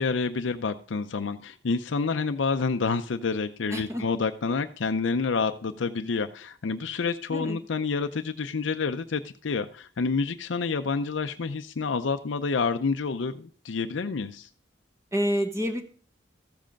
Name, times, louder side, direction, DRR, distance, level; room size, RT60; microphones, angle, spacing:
voice 1, 0.0-14.5, left 4 dB, 75° left, 8 dB, 0.5 m, -28 dB
voice 2, 3.7-4.0 7.3-7.6 15.1-15.8, equal, 15° right, 7 dB, 1.1 m, -28 dB
14.0 x 7.6 x 5.1 m, 0.43 s
head